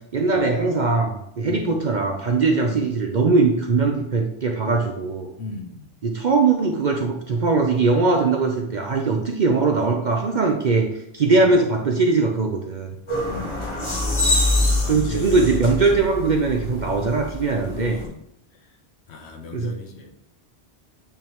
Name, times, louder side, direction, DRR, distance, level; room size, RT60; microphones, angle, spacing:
voice 1, 0.1-5.3 6.0-12.9 14.9-18.0 19.5-19.7, right 3 dB, 50° right, 2 dB, 0.7 m, -21 dB
voice 2, 5.4-5.8 11.4-11.5 13.2-13.5 14.4-16.0 17.0-17.1 17.7-18.2 19.1-20.1, left 3 dB, 70° left, 3 dB, 1.1 m, -35 dB
sound 1, 13.1-18.0, left 2 dB, 25° left, 1.1 m, -25 dB
8.9 x 3.5 x 3.0 m, 0.79 s
omnidirectional pair, 1.1 m